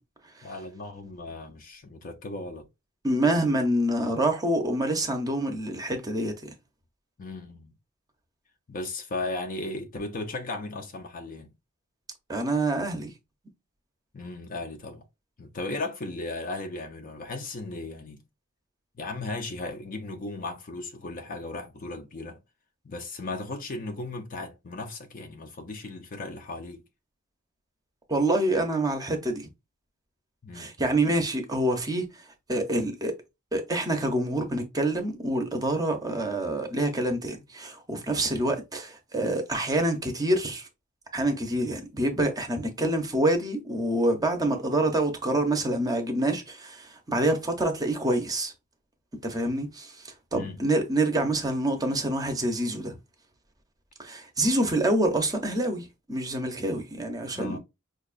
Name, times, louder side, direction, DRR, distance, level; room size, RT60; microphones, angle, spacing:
voice 1, 0.4-2.7 7.2-7.7 8.7-11.5 14.1-15.0 15.4-18.2 19.0-22.4 22.8-26.8 30.4-30.7 50.3-50.6 57.3-57.6, left 2 dB, 40° left, 0.5 m, -36 dB
voice 2, 3.0-6.5 12.3-13.1 28.1-29.5 30.5-32.1 32.5-33.2 33.5-40.7 41.1-48.5 49.2-49.9 50.3-53.0 54.0-57.6, right 1 dB, 15° right, 0.7 m, -26 dB
4.9 x 2.3 x 2.4 m
head